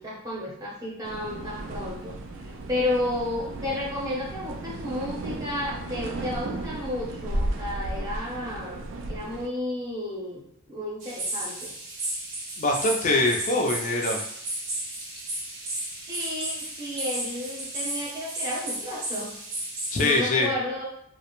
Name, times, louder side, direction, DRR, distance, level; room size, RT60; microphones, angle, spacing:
voice 1, 0.0-11.7 16.1-19.4 20.0-20.8, left 1 dB, 15° right, -5 dB, 0.6 m, -32 dB
sound 1, 1.0-9.5, right 1 dB, 60° right, 0.3 m, -34 dB
sound 2, 11.0-20.2, right 1 dB, 75° right, 0.7 m, -33 dB
voice 2, 12.6-14.2 19.9-20.5, left 2 dB, 35° left, 1 dB, 0.4 m, -23 dB
2.4 x 2.1 x 2.9 m, 0.74 s
head